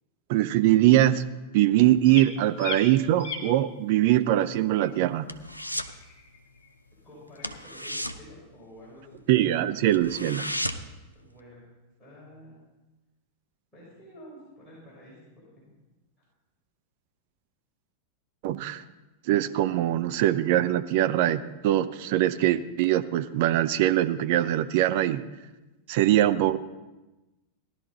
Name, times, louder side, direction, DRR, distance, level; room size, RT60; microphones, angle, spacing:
voice 1, 0.3-1.2 1.5-5.3 9.3-10.5 18.4-18.8 19.3-25.3 25.9-26.6, right 13 dB, 50° right, 11 dB, 0.5 m, -22 dB
sound 1, 2.0-2.3 2.6-2.8 3.2-3.5 4.8-4.9 5.7-6.7 7.4-7.6, left 6 dB, 45° left, 2.0 m, -38 dB
sound 2, 4.4-6.0 6.3-6.6 6.9-7.0 7.4-9.2 9.6-9.7 9.9-11.0 11.4-11.5, equal, 90° left, 0.5 m, -34 dB
voice 2, 7.0-9.2 11.1-11.7 12.0-12.6 13.7-15.7, left 1 dB, 10° left, -9 dB, 5.4 m, -49 dB
16.0 x 11.5 x 4.1 m, 1.1 s
figure-of-eight pair, 90°, 0 cm